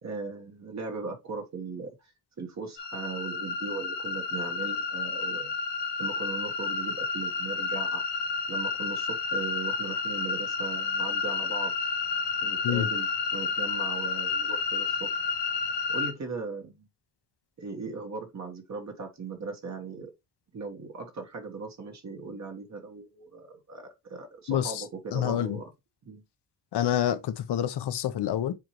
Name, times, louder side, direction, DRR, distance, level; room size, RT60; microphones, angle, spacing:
voice 1, 0.0-2.1 2.4-5.5 6.0-8.0 8.5-11.9 12.4-15.1 15.9-16.9 17.6-20.1 20.5-25.7 26.0-26.2, right 4 dB, 40° right, 1.4 m, -38 dB
sound 1, 2.8-16.1, left 5 dB, 85° left, 1.3 m, -30 dB
voice 2, 24.5-24.8 25.1-25.6 26.7-28.5, left 10 dB, 70° left, 1.0 m, -27 dB
7.3 x 4.5 x 3.1 m
cardioid pair, 135°, 41 cm